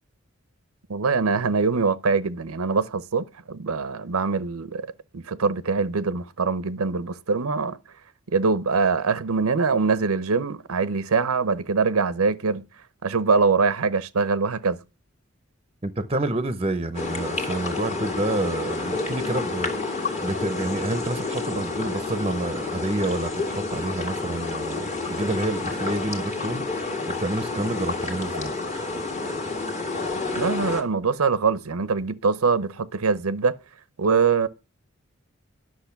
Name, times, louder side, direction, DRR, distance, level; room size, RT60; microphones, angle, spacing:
voice 1, 0.9-4.9 5.1-7.8 8.3-12.6 13.0-14.8 30.3-33.5 34.0-34.5, right 4 dB, 85° right, 0.7 m, -23 dB
voice 2, 15.8-26.7 26.9-28.5, right 2 dB, 25° right, 0.7 m, -29 dB
sound 1, 16.9-30.8, left 3 dB, 30° left, 1.8 m, -29 dB
10.5 x 6.3 x 5.8 m
head